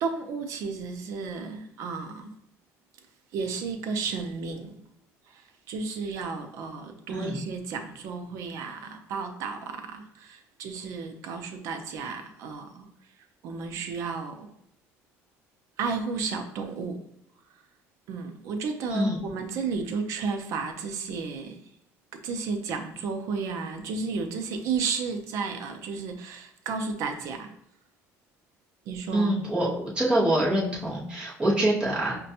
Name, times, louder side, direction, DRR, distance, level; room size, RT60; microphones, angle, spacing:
voice 1, 0.0-2.3 3.3-4.8 5.3-12.9 13.4-14.5 15.8-17.0 18.1-21.6 22.1-27.5 28.9-29.4, right 5 dB, 60° right, 0.5 m, -33 dB
voice 2, 7.1-7.4 18.9-19.2 29.1-32.2, right 1 dB, 15° right, 0.9 m, -25 dB
5.0 x 2.2 x 2.8 m
cardioid pair, 160°, 6 cm